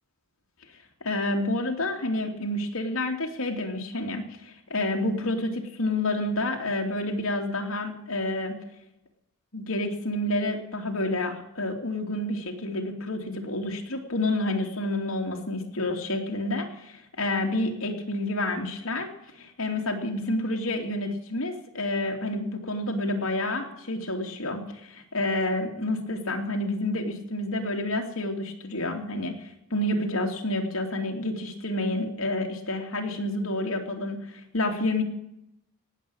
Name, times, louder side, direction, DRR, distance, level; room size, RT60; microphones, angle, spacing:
voice 1, 1.0-8.6 9.5-35.0, left 1 dB, 90° left, 2 dB, 2.8 m, -29 dB
18.5 x 7.9 x 8.8 m, 0.80 s
head